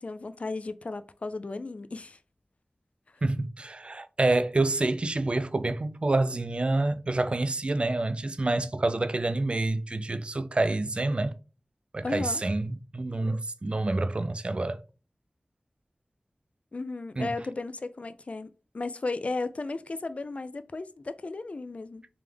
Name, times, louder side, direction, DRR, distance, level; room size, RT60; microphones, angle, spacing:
voice 1, 0.0-2.2 12.0-12.4 16.7-18.5 18.7-22.1, left 3 dB, 55° left, 0.3 m, -35 dB
voice 2, 3.2-11.4 11.9-14.8 17.2-17.3, right 2 dB, 45° right, 0.3 m, -27 dB
3.4 x 3.3 x 3.4 m
wide cardioid pair, 60°, 3 cm